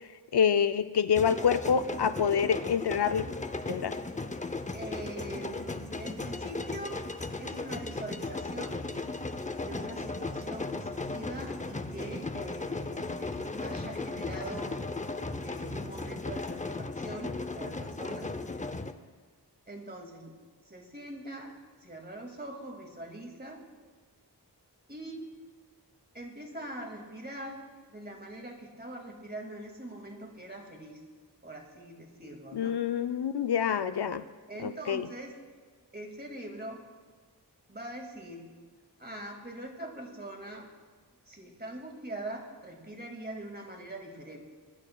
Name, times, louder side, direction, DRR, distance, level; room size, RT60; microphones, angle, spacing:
voice 1, 0.3-3.3 3.7-3.9 32.5-34.2 34.6-35.1, left 7 dB, 75° left, 11 dB, 0.5 m, -27 dB
sound 1, 1.1-18.9, left 3 dB, 20° left, 0.6 m, -36 dB
voice 2, 4.7-7.0 7.4-8.9 9.6-14.8 15.4-18.3 19.7-20.3 20.7-21.5 21.8-23.6 24.9-25.2 26.1-31.0 31.4-32.8 34.5-35.4 35.9-36.8 37.7-38.5 39.0-40.7 41.3-44.4, right 1 dB, 25° right, 1 dB, 2.2 m, -43 dB
21.0 x 11.0 x 2.3 m, 1.5 s
wide cardioid pair, 55°, 40 cm